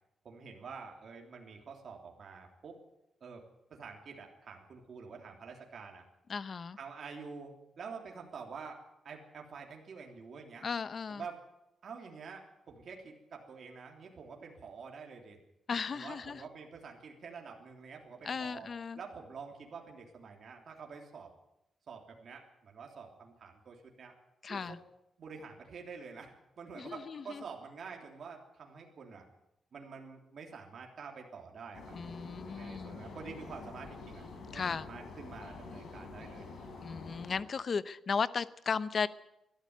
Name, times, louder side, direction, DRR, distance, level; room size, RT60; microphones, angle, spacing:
voice 1, 0.2-2.8 3.2-3.4 3.7-6.0 6.8-8.8 9.0-10.7 11.1-11.4 11.8-15.4 15.9-18.7 18.9-21.3 21.9-24.1 24.5-24.8 25.2-29.3 29.7-32.0 32.5-34.3 34.5-36.7, right 5 dB, 45° right, 1 dB, 3.2 m, -48 dB
voice 2, 6.3-6.8 10.6-11.2 15.7-16.4 18.2-19.0 24.4-24.8 26.8-27.4 31.9-33.0 34.5-34.9 36.8-39.1, left 5 dB, 40° left, 16 dB, 0.7 m, -35 dB
sound 1, 31.7-37.4, left 3 dB, 60° left, 5.5 m, -47 dB
21.5 x 13.0 x 9.5 m, 0.86 s
wide cardioid pair, 170°, 0 cm